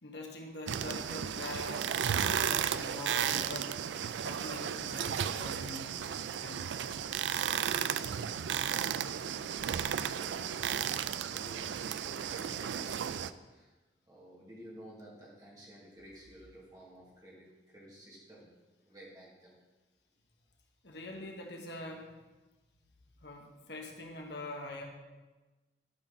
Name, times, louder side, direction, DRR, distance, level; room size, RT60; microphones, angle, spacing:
voice 1, 0.0-1.9 2.2-3.7 4.2-5.9 6.4-6.7 20.8-22.1 23.2-24.9, left 2 dB, 75° left, 1 dB, 1.4 m, -44 dB
sound 1, 0.7-13.3, right 8 dB, 80° right, 0.4 m, -34 dB
voice 2, 11.1-13.7 14.1-18.5 18.8-19.5, equal, 20° right, -6 dB, 2.6 m, -54 dB
12.5 x 5.9 x 4.1 m, 1.2 s
head